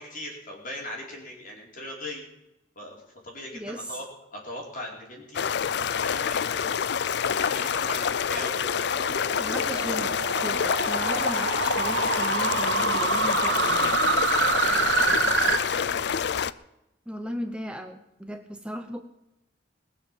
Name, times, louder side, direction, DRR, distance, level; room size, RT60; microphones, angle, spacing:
voice 1, 0.0-2.2 2.7-4.0 4.3-5.4 5.7-8.6 14.4-16.0, left 1 dB, 50° left, -1 dB, 4.6 m, -40 dB
voice 2, 3.5-4.0 9.4-14.0 17.1-19.0, equal, 5° right, 6 dB, 0.8 m, -36 dB
sound 1, 5.3-16.5, left 7 dB, 65° left, 0.5 m, -27 dB
sound 2, 7.5-15.6, right 4 dB, 80° right, 1.6 m, -27 dB
21.0 x 7.5 x 7.5 m, 0.90 s
head